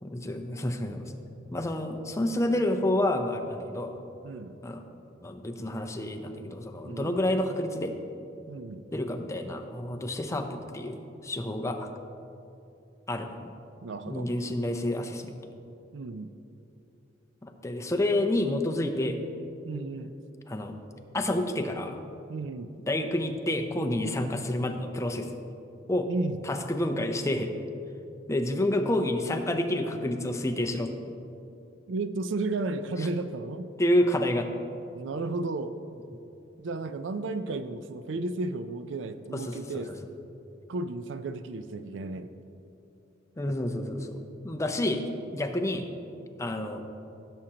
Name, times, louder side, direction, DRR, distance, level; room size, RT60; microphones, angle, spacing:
voice 1, 0.0-1.1 1.5-3.9 4.6-4.9 5.2-7.9 8.9-11.9 13.1-13.5 14.1-15.4 17.4-19.2 20.5-20.7 21.1-22.0 22.9-25.4 25.9-26.1 26.4-27.5 28.3-30.9 33.0-33.1 33.8-34.5 39.3-39.8 43.4-45.0 45.3-45.9 46.4-46.8, left 1 dB, 15° left, 4 dB, 0.6 m, -29 dB
voice 2, 4.2-4.6 6.8-7.2 8.5-8.8 13.8-14.3 15.9-16.3 19.7-20.1 22.3-22.7 26.1-26.4 31.9-33.7 34.9-35.7 36.6-39.9 40.7-42.3, right 3 dB, 75° right, 10 dB, 0.4 m, -33 dB
15.5 x 7.4 x 2.9 m, 2.7 s
head